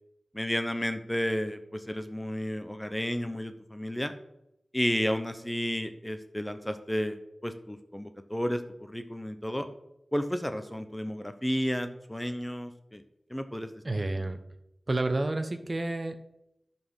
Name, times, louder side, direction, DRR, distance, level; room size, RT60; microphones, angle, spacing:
voice 1, 0.3-4.1 4.7-8.6 8.9-9.7 10.1-13.0 13.3-13.7, equal, 10° left, 8 dB, 0.8 m, -32 dB
voice 2, 13.8-14.4 14.9-16.3, right 2 dB, 45° right, 8 dB, 0.9 m, -30 dB
11.0 x 4.4 x 6.3 m, 0.84 s
wide cardioid pair, 55°, 0 cm